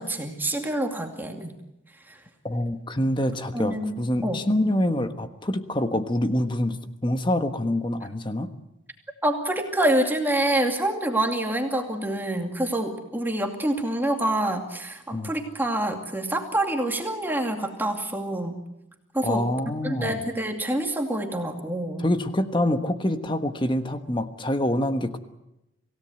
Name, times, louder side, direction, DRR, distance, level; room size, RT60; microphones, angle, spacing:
voice 1, 0.0-1.5 2.1-2.2 3.5-4.4 9.2-18.6 19.1-19.5 19.8-22.0, right 1 dB, 10° right, 3 dB, 2.4 m, -26 dB
voice 2, 2.4-8.5 15.1-15.3 19.2-20.2 22.0-25.2, left 1 dB, 25° left, 8 dB, 1.4 m, -26 dB
27.0 x 17.0 x 7.8 m, 0.91 s
head